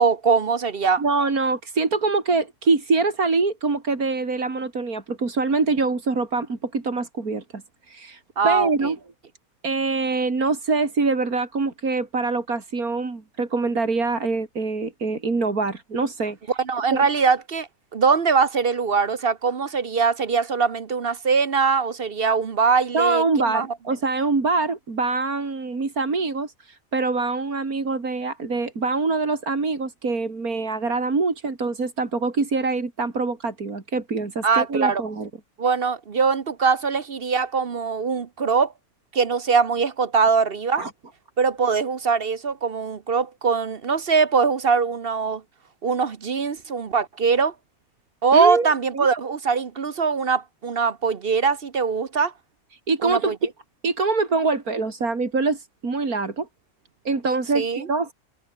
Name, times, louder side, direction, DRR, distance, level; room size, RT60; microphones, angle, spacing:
voice 1, 0.0-1.0 8.4-8.9 16.6-23.7 34.4-35.0 35.6-38.7 39.1-40.8 41.4-45.4 45.8-47.5 48.2-52.3 53.0-53.4 57.5-57.9, right 5 dB, 45° right, 1.1 m, -22 dB
voice 2, 1.0-9.0 9.6-16.5 16.9-17.0 22.9-35.3 40.8-40.9 48.3-48.7 48.9-49.1 52.9-53.4 53.8-56.5 57.1-58.1, right 3 dB, 80° right, 3.7 m, -24 dB
omnidirectional pair, 1.5 m